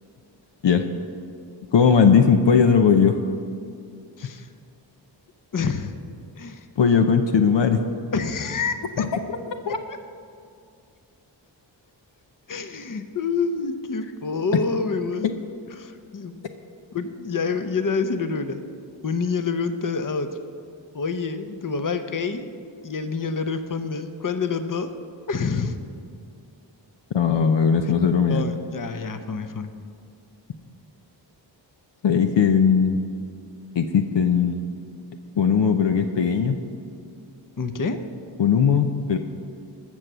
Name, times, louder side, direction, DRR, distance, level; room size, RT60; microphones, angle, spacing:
voice 1, 1.7-3.2 6.8-7.8 9.3-9.4 9.7-9.8 27.1-28.4 32.0-33.0 33.8-34.6 35.4-36.6 38.4-39.2, left 6 dB, 70° left, 6 dB, 0.8 m, -18 dB
voice 2, 4.2-4.5 5.5-6.0 6.4-6.6 8.1-9.1 9.7-10.0 12.5-15.3 15.8-16.3 16.9-18.6 19.0-20.3 20.9-22.5 22.8-24.9 25.3-25.8 28.3-29.7 37.6-38.0, left 4 dB, 45° left, 9 dB, 0.9 m, -27 dB
15.0 x 6.2 x 6.8 m, 2.3 s
cardioid pair, 60°, 45 cm